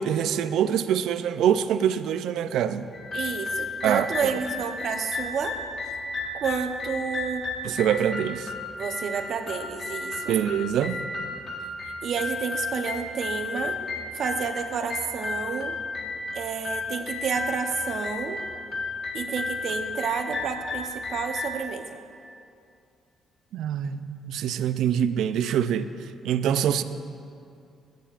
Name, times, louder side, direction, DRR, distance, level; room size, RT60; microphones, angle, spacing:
voice 1, 0.0-2.9 3.8-4.3 7.6-8.5 10.3-11.1 23.5-25.9 26.2-26.8, right 9 dB, 80° right, 11 dB, 0.4 m, -25 dB
sound 1, 2.9-21.6, left 3 dB, 50° left, 1.4 m, -33 dB
voice 2, 3.1-5.6 6.4-7.4 8.7-10.3 12.0-13.8 14.1-15.7 16.3-18.4 19.1-22.0, right 6 dB, 65° right, 6 dB, 0.8 m, -30 dB
16.0 x 9.1 x 2.5 m, 2.5 s
cardioid pair, 90°, 0 cm